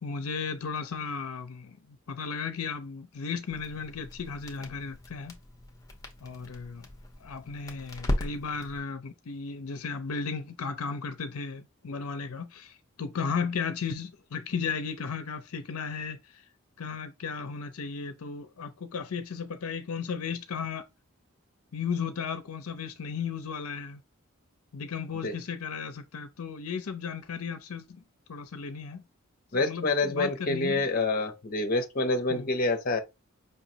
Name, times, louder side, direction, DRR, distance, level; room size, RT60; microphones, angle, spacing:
voice 1, 0.0-5.4 6.2-6.9 7.2-16.5 16.8-20.9 21.7-24.0 24.7-28.0 28.3-29.0 29.5-30.9 32.3-32.5, left 5 dB, 80° left, 0.5 m, -35 dB
Crackle, 3.5-8.8, left 1 dB, 15° left, 1.0 m, -37 dB
voice 2, 29.5-33.0, left 2 dB, 40° left, 0.8 m, -27 dB
5.5 x 3.0 x 2.8 m
head